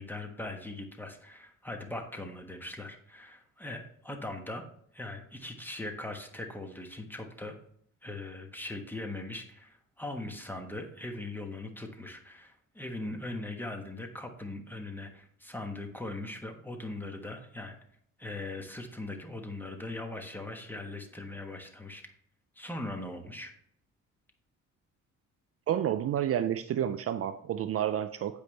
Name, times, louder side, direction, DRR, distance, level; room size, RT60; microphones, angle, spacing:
voice 1, 0.0-4.6 4.9-7.5 8.0-17.8 18.2-22.1 22.5-23.5, left 2 dB, 5° left, 4 dB, 1.3 m, -40 dB
voice 2, 25.7-28.4, right 10 dB, 50° right, 11 dB, 0.4 m, -30 dB
8.3 x 5.2 x 3.3 m, 0.66 s
cardioid pair, 90°, 30 cm